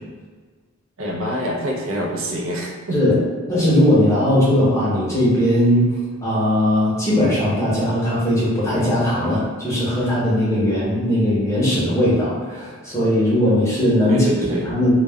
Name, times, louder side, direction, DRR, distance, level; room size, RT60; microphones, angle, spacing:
voice 1, 1.0-3.2 14.1-14.7, equal, 65° right, -1 dB, 0.4 m, -25 dB
voice 2, 3.5-5.9 6.2-14.3 14.6-14.9, left 1 dB, 15° left, -8 dB, 0.7 m, -18 dB
2.2 x 2.1 x 3.4 m, 1.4 s
head